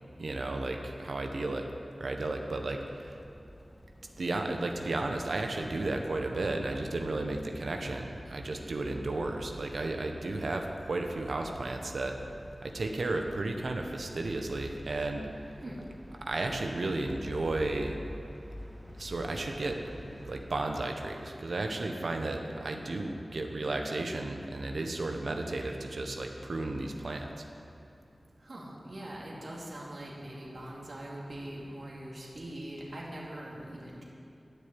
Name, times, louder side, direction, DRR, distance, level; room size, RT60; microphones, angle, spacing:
voice 1, 0.2-1.7 2.0-3.2 4.2-12.2 12.6-15.3 16.2-18.0 19.0-19.8 20.1-27.3, right 2 dB, 85° right, 3 dB, 1.0 m, -33 dB
sound 1, 2.8-20.4, equal, ahead, 1.6 m, -50 dB
voice 2, 28.4-34.0, right 1 dB, 65° right, -4 dB, 2.6 m, -42 dB
11.5 x 6.8 x 8.9 m, 2.7 s
wide cardioid pair, 70°, 0 cm